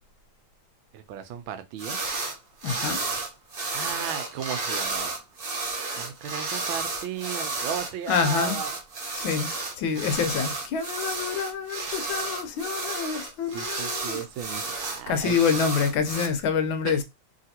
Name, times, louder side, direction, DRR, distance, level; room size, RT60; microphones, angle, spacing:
voice 1, 0.9-2.0 3.7-5.1 6.0-8.8 13.5-15.4 16.8-17.0, right 9 dB, 80° right, 1.3 m, -35 dB
sound 1, 1.8-2.3 2.6-16.3, right 3 dB, 60° right, 0.6 m, -32 dB
voice 2, 2.6-3.0 8.1-8.6 9.1-14.2 15.1-17.0, left 6 dB, 80° left, 1.3 m, -27 dB
3.1 x 2.8 x 2.8 m
omnidirectional pair, 2.2 m